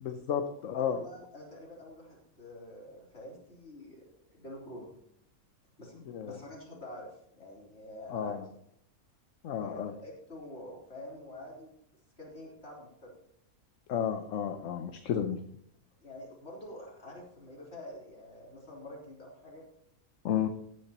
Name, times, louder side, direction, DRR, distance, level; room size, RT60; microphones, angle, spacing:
voice 1, 0.0-1.0 6.1-6.4 8.1-8.4 9.4-9.9 13.9-15.4 20.2-20.5, left 8 dB, 65° left, 7 dB, 1.0 m, -32 dB
voice 2, 0.8-4.9 5.8-7.1 7.4-8.5 9.5-11.7 12.2-13.1 16.0-19.7, left 1 dB, 45° left, -4 dB, 4.0 m, -47 dB
16.5 x 9.8 x 3.0 m, 0.71 s
omnidirectional pair, 1.5 m